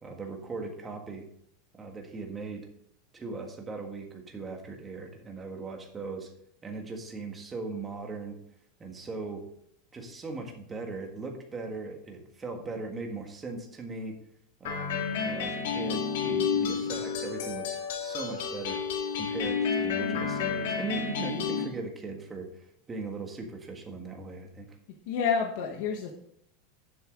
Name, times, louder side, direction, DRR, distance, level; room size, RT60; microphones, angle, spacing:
voice 1, 0.0-1.2 1.7-2.7 3.1-6.3 6.6-8.4 8.8-9.5 9.9-14.2 14.6-18.8 19.1-24.8, right 3 dB, 15° right, 3 dB, 1.6 m, -39 dB
sound 1, 14.6-21.6, left 6 dB, 75° left, 2.2 m, -30 dB
voice 2, 25.1-26.1, left 6 dB, 55° left, 2 dB, 1.3 m, -28 dB
10.5 x 7.8 x 3.8 m, 0.71 s
supercardioid pair, 165°, 0 cm